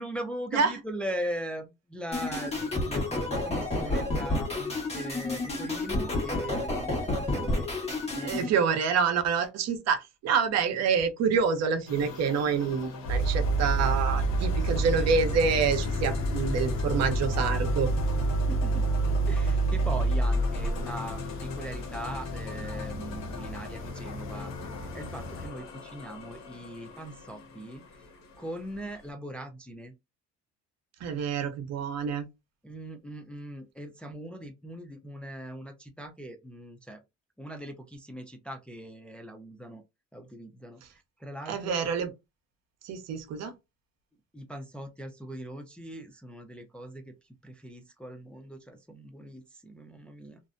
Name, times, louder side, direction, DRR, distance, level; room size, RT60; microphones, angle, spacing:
voice 1, 0.0-7.7 8.1-8.5 18.5-18.9 19.3-27.8 28.4-30.0 32.6-37.0 37.4-39.8 40.1-41.8 44.3-50.4, right 1 dB, 5° left, 0.4 m, -40 dB
sound 1, 2.1-8.5, left 2 dB, 20° left, 1.1 m, -30 dB
voice 2, 8.2-17.9 31.0-32.2 41.5-42.1 42.8-43.5, right 6 dB, 60° right, 0.7 m, -27 dB
sound 2, 11.9-29.1, left 3 dB, 65° left, 0.9 m, -43 dB
sound 3, 13.1-25.5, right 2 dB, 45° left, 0.6 m, -29 dB
2.6 x 2.0 x 2.4 m
cardioid pair, 100°, 30 cm